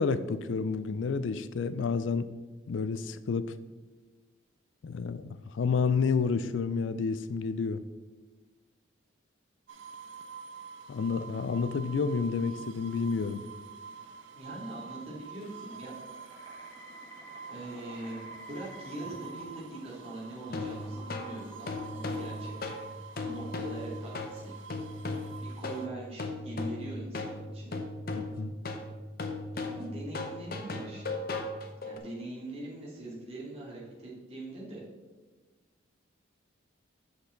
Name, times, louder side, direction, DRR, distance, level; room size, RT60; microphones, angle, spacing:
voice 1, 0.0-2.3 2.7-3.5 4.8-7.8 10.9-13.4 28.2-28.5, left 5 dB, 80° left, 14 dB, 0.4 m, -30 dB
sound 1, 9.7-25.9, right 5 dB, 85° right, 0.6 m, -47 dB
voice 2, 14.3-15.9 17.5-24.5 25.4-27.8 29.6-31.2 31.8-34.8, right 1 dB, 30° right, -6 dB, 2.4 m, -42 dB
sound 2, 15.3-23.8, right 1 dB, 25° left, 1.4 m, -52 dB
sound 3, 20.5-32.0, left 2 dB, 50° left, 0.8 m, -37 dB
7.8 x 6.4 x 3.9 m, 1.3 s
head